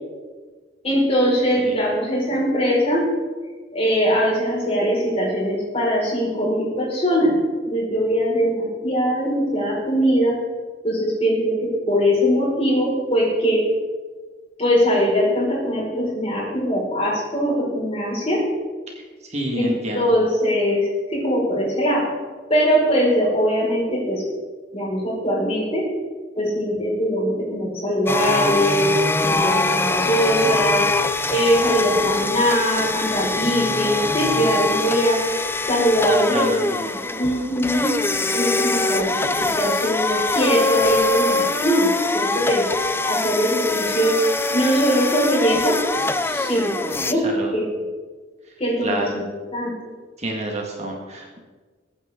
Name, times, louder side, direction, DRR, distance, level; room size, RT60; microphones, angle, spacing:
voice 1, 0.8-3.1 3.7-7.3 7.6-10.3 10.8-13.6 14.6-18.4 19.5-22.0 22.5-24.2 24.7-25.8 26.3-28.9 29.2-30.8 31.3-35.2 35.7-37.9 38.3-42.6 43.0-44.2 44.5-45.8 46.2-47.3 47.5-47.8 48.6-49.2 49.5-49.7, equal, 30° left, -4 dB, 5.1 m, -21 dB
voice 2, 19.3-20.1 36.3-36.6 47.2-47.5 48.8-49.1 50.2-51.4, right 1 dB, 35° right, 0 dB, 1.8 m, -27 dB
sound 1, 28.1-47.1, left 2 dB, 10° left, 0.4 m, -23 dB
21.0 x 9.3 x 3.8 m, 1.4 s
head